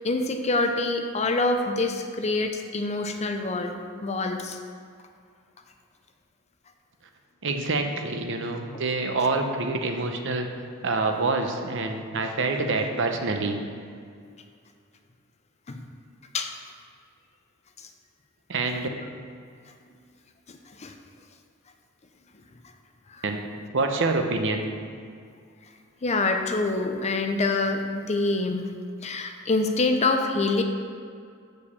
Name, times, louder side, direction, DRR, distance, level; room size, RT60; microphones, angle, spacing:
voice 1, 0.0-3.7 4.0-4.6 15.7-15.8 16.3-16.5 20.5-20.9 23.1-23.2 26.0-28.7 29.0-30.6, left 3 dB, 35° left, 5 dB, 0.6 m, -26 dB
voice 2, 7.4-10.5 10.8-13.6 18.5-18.9 23.2-23.4 23.7-24.6, right 3 dB, 65° right, 4 dB, 0.8 m, -26 dB
6.4 x 5.2 x 7.0 m, 2.3 s
head